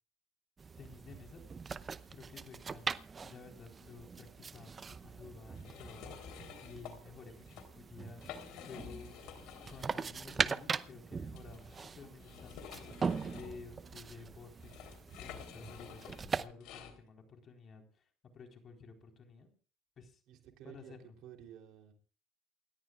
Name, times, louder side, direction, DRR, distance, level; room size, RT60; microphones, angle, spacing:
sound 1, 0.6-16.5, right 5 dB, 30° right, 0.7 m, -41 dB
voice 1, 0.8-1.4 2.1-6.2 6.6-8.2 8.7-9.2 9.7-18.0 18.3-19.5 20.0-20.2 20.6-21.2, left 4 dB, 40° left, 3 dB, 4.0 m, -53 dB
sound 2, 5.5-6.9 7.4-7.6 8.1-10.0 10.3-10.4 11.3-16.9, left 8 dB, 70° left, 3.4 m, -50 dB
voice 2, 20.3-20.9 21.2-21.9, right 10 dB, 65° right, 4 dB, 3.2 m, -52 dB
28.5 x 13.5 x 2.4 m, 0.39 s
supercardioid pair, 100°, 0 cm